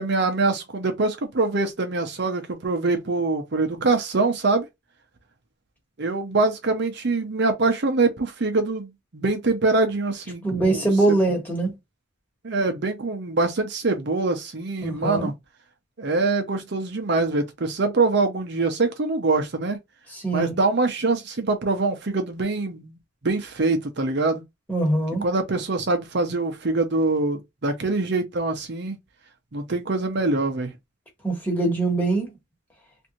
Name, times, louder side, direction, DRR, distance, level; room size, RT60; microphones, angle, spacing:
voice 1, 0.0-4.7 6.0-10.8 12.4-15.3 16.0-19.8 20.3-23.0 23.2-24.4 25.2-29.0 29.5-30.7, right 3 dB, 55° right, 0.7 m, -24 dB
voice 2, 10.4-11.8 14.8-15.3 20.1-20.5 24.7-25.2 31.2-32.3, right 2 dB, 10° left, 1.3 m, -23 dB
3.3 x 2.6 x 2.9 m
head